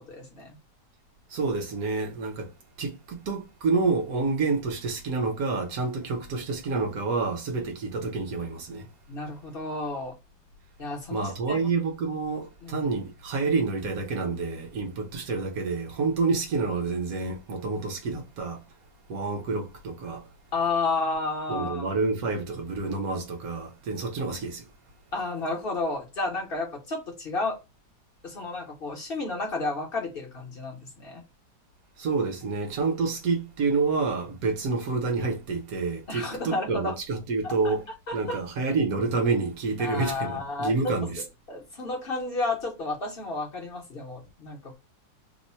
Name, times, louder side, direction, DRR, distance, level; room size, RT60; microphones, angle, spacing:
voice 1, 0.1-0.6 9.1-10.1 10.8-11.6 12.6-12.8 20.5-21.9 25.1-27.6 28.2-31.2 36.1-36.9 37.4-37.7 38.1-38.4 39.8-40.7 41.5-44.8, left 3 dB, 45° left, 0.8 m, -31 dB
voice 2, 1.3-2.5 2.8-8.9 11.1-18.6 19.1-20.3 21.5-24.6 32.0-37.8 38.1-41.2, right 4 dB, 60° right, 1.1 m, -28 dB
3.0 x 2.1 x 4.2 m
omnidirectional pair, 1.9 m